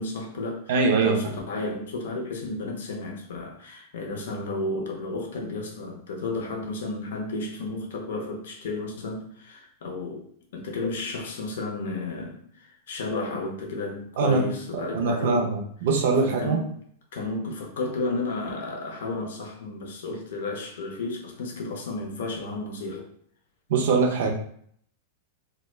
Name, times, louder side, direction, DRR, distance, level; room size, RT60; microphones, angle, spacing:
voice 1, 0.0-0.7 1.0-10.3 10.5-15.5 16.2-16.7 17.1-23.1, left 2 dB, 75° left, 1 dB, 0.5 m, -32 dB
voice 2, 0.7-1.3 14.2-14.4 14.7-16.6 23.7-24.3, right 4 dB, 70° right, 2 dB, 0.5 m, -23 dB
2.1 x 2.1 x 3.1 m, 0.62 s
hypercardioid pair, 115°, 0 cm